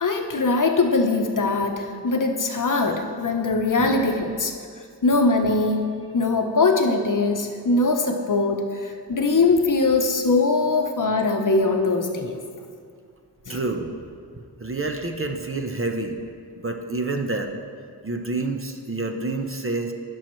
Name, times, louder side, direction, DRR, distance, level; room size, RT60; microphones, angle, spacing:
voice 1, 0.0-4.5 5.0-5.8 6.1-12.4 13.5-13.6, left 3 dB, 50° left, 4 dB, 0.8 m, -21 dB
voice 2, 13.5-13.9 14.6-16.2 16.6-17.6 18.0-19.9, right 2 dB, 35° right, 4 dB, 0.7 m, -28 dB
14.5 x 6.3 x 3.1 m, 2.2 s
wide cardioid pair, 80°, 40 cm